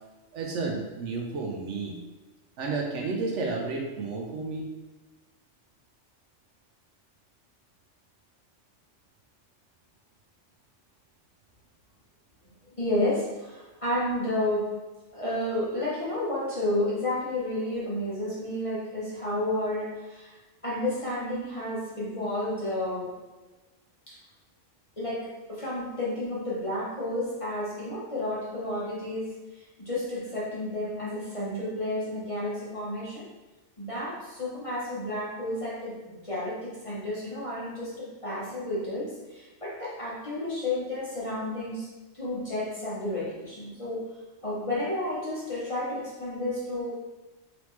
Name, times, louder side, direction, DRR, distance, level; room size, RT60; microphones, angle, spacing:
voice 1, 0.3-2.0 2.6-4.7, right 3 dB, 70° right, 0 dB, 0.9 m, -31 dB
voice 2, 12.8-14.7 15.1-20.4 20.6-23.1 24.1-24.2 25.0-33.2 33.8-41.9 42.1-44.0 44.4-46.9, left 1 dB, 30° left, -7 dB, 0.8 m, -31 dB
4.0 x 3.3 x 3.0 m, 1.2 s
omnidirectional pair, 1.3 m